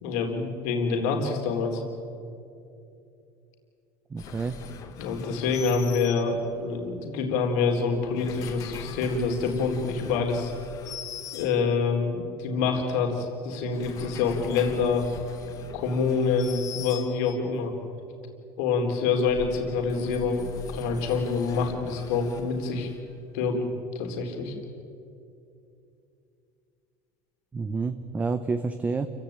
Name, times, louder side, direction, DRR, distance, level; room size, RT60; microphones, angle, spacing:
voice 1, 0.0-1.8 5.0-10.5 11.3-15.1 15.7-17.7 18.6-22.9 23.3-23.6 23.9-24.5, left 4 dB, 80° left, 2 dB, 3.9 m, -26 dB
voice 2, 4.1-4.6 27.5-29.1, right 4 dB, 15° right, 9 dB, 0.9 m, -29 dB
sound 1, 4.2-6.7 8.0-12.0 13.5-17.6 19.1-23.2, left 6 dB, 40° left, 2.0 m, -42 dB
29.0 x 16.5 x 9.0 m, 2.6 s
cardioid pair, 150°, 9 cm